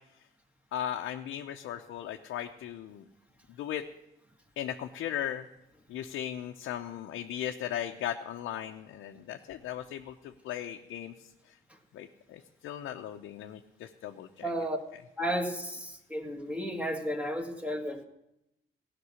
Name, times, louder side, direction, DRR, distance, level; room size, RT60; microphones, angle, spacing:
voice 1, 0.7-3.0 3.6-3.8 4.6-5.5 5.9-11.1 11.9-14.5, left 10 dB, 80° left, 3 dB, 0.7 m, -37 dB
voice 2, 14.4-14.8 15.2-18.0, equal, 5° right, 2 dB, 1.9 m, -33 dB
15.0 x 6.1 x 9.6 m, 0.87 s
cardioid pair, 90°, 20 cm